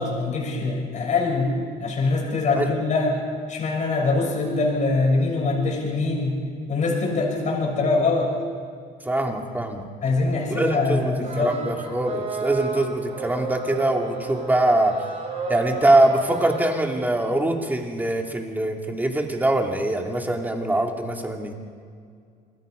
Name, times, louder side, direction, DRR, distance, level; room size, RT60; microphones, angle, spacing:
voice 1, 0.0-3.2 3.5-6.4 6.7-8.3 10.0-11.6, left 3 dB, 45° left, 0 dB, 6.7 m, -23 dB
voice 2, 9.0-9.9 10.5-15.0 15.5-21.5, right 1 dB, 10° right, 2 dB, 2.9 m, -23 dB
sound 1, 11.2-16.7, right 4 dB, 40° right, 5.4 m, -32 dB
27.5 x 21.0 x 5.3 m, 2.2 s
cardioid pair, 110°, 17 cm